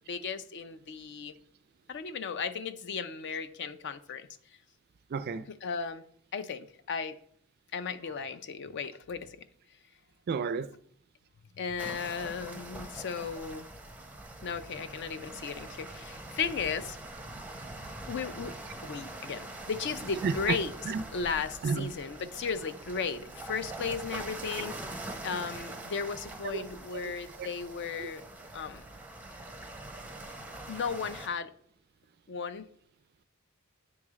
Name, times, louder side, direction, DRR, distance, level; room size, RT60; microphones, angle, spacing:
voice 1, 0.1-1.3 1.9-4.3 5.5-6.0 6.3-7.2 7.7-9.4 11.6-13.7 14.4-17.0 18.1-18.6 18.8-20.7 21.1-24.8 25.2-28.2 28.5-28.8 30.7-31.5 32.3-32.7, left 5 dB, 55° left, 0.4 m, -35 dB
voice 2, 5.1-5.5 10.3-10.7 20.2-20.6 20.9-21.0 21.6-21.9 26.4-26.6, right 5 dB, 45° right, 0.3 m, -30 dB
sound 1, 11.8-31.3, right 2 dB, 5° right, 0.6 m, -43 dB
9.3 x 3.2 x 3.6 m
head